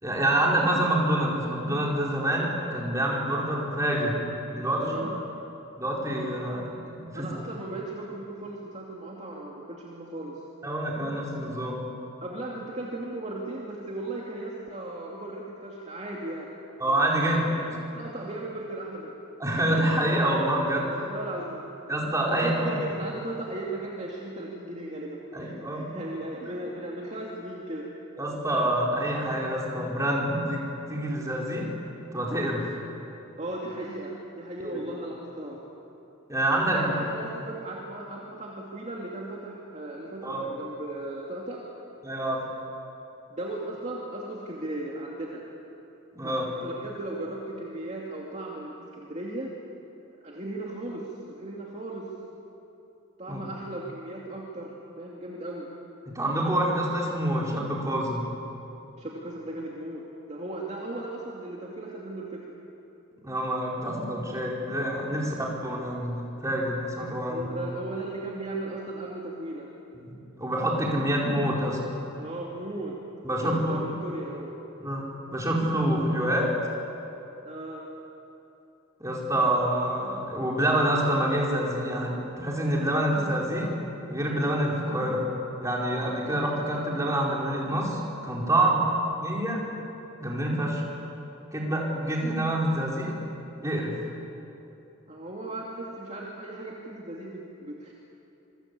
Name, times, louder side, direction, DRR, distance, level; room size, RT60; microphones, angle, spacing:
voice 1, 0.0-4.2 4.5-5.0 5.8-7.3 10.6-11.8 16.8-17.7 19.4-20.9 21.9-22.8 25.3-25.9 26.4-26.5 28.2-30.6 30.9-31.6 32.1-32.8 34.6-34.8 36.3-36.9 40.2-40.5 42.0-42.4 46.1-46.4 53.3-53.4 56.1-58.3 63.2-65.3 65.6-67.5 69.9-71.8 73.2-73.8 74.8-75.1 75.3-76.5 79.0-83.7 84.1-85.2 85.6-88.8 89.2-89.6 90.2-90.8 91.5-93.1 93.6-93.9, right 1 dB, 15° right, -3 dB, 4.7 m, -27 dB
voice 2, 4.8-5.1 7.1-10.4 12.2-16.5 17.2-17.5 17.9-19.2 20.8-21.6 22.3-27.9 33.4-35.6 36.7-41.6 43.3-45.4 46.2-49.5 50.2-52.1 53.2-55.7 59.0-62.5 65.2-65.5 67.3-69.7 72.2-73.0 73.3-74.5 77.4-77.9 88.6-88.8 95.1-97.9, right 2 dB, 35° right, -3 dB, 2.5 m, -37 dB
26.5 x 23.5 x 8.4 m, 3.0 s
head